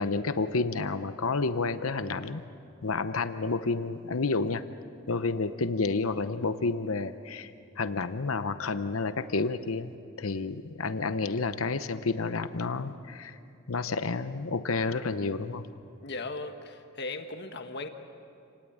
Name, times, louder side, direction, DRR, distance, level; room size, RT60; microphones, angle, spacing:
voice 1, 0.0-2.4 2.8-4.6 5.1-7.5 7.8-13.3 13.7-15.7, left 3 dB, 85° left, 11 dB, 0.9 m, -30 dB
voice 2, 16.0-17.9, left 3 dB, 55° left, 6 dB, 1.5 m, -37 dB
29.0 x 19.0 x 8.7 m, 2.6 s
head